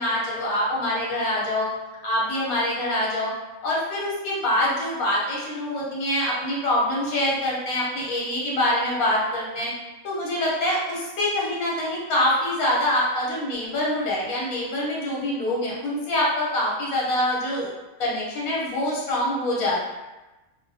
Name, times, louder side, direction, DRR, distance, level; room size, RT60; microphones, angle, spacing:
voice 1, 0.0-1.7 2.0-3.3 3.6-9.7 10.0-17.7 18.0-19.8, left 1 dB, 85° left, -5 dB, 1.2 m, -25 dB
2.6 x 2.0 x 2.6 m, 1.1 s
omnidirectional pair, 1.5 m